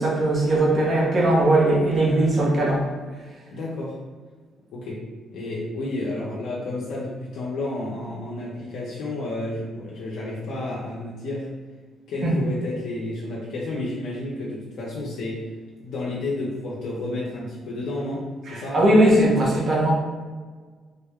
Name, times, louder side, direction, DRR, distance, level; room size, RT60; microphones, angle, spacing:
voice 1, 0.0-2.9 12.2-12.3 18.5-19.9, right 1 dB, 45° right, -5 dB, 1.1 m, -19 dB
voice 2, 3.5-4.0 4.7-5.0 5.3-11.5 12.1-15.4 15.8-18.2 18.5-18.8, left 2 dB, 80° left, -5 dB, 0.6 m, -31 dB
3.6 x 2.1 x 3.5 m, 1.4 s
cardioid pair, 90°, 0 cm